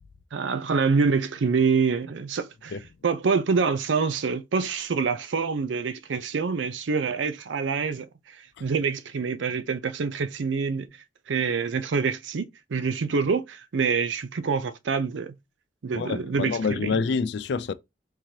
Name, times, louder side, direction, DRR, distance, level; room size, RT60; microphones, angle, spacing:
voice 1, 0.3-10.9 11.3-15.3 15.8-17.0, right 5 dB, 85° right, 0.5 m, -26 dB
voice 2, 15.9-17.7, left 5 dB, 65° left, 0.4 m, -27 dB
3.6 x 3.1 x 2.8 m
head